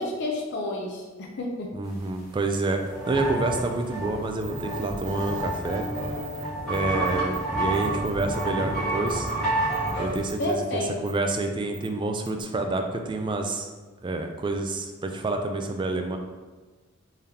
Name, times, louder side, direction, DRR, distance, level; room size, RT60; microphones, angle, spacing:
voice 1, 0.0-1.7 10.4-10.9, left 2 dB, 55° left, 0 dB, 0.5 m, -30 dB
voice 2, 1.7-2.8 3.1-5.9 6.7-9.3 10.0-10.6 11.0-13.7 14.0-16.2, right 2 dB, 25° right, 4 dB, 0.3 m, -28 dB
sound 1, 2.4-2.5 2.7-10.3, right 1 dB, 5° left, 1.4 m, -29 dB
sound 2, 4.4-6.4 6.7-6.8 7.0-7.4 7.7-8.4 9.1-9.3 9.7-10.5 11.0-11.1 11.7-11.9 12.3-12.4, right 4 dB, 40° left, 1.0 m, -43 dB
3.8 x 3.3 x 2.8 m, 1.3 s
head